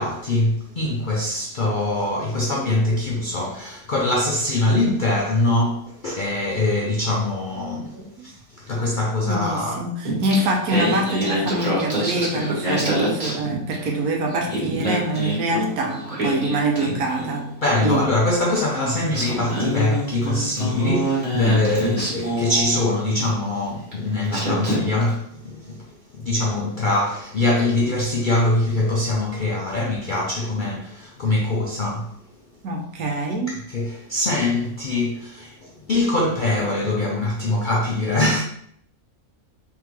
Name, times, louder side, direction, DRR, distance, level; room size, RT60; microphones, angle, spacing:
voice 1, 0.0-9.9 17.6-25.9 26.1-32.1 33.5-38.4, left 2 dB, 65° left, 0.5 m, -23 dB
voice 2, 9.3-17.5 17.8-18.1 18.8-19.0 32.6-33.6, right 2 dB, 85° right, 1.3 m, -25 dB
Singing, 10.0-14.0 14.3-17.5 18.6-18.7 19.1-23.3 23.9-24.0 24.3-25.1, equal, 25° right, 1.4 m, -26 dB
3.6 x 3.5 x 3.1 m
omnidirectional pair, 1.5 m